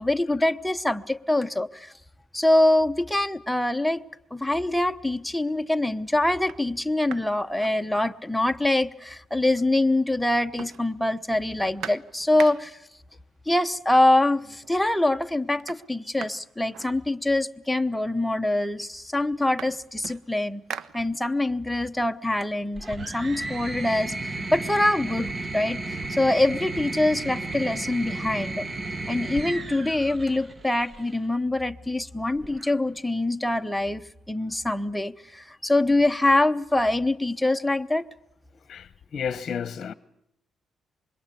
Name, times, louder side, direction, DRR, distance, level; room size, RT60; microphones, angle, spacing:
voice 1, 0.0-1.9 2.3-4.0 4.3-12.8 13.5-20.6 20.9-28.6 29.1-38.0, left 1 dB, 5° left, 1.0 m, -24 dB
sound 1, 5.0-5.4 5.9-6.0 6.3-8.4 8.8-8.9 9.1-9.9 10.2-12.9 13.9-14.0 14.4-14.9 15.1-17.5 18.3-18.4 18.7-21.6 22.0-23.7, right 8 dB, 75° right, 1.0 m, -43 dB
sound 2, 22.7-31.2 32.4-33.0, right 2 dB, 35° right, 1.5 m, -34 dB
voice 2, 39.1-39.9, left 7 dB, 50° left, 1.0 m, -31 dB
25.5 x 22.0 x 8.4 m
cardioid pair, 90°, 0 cm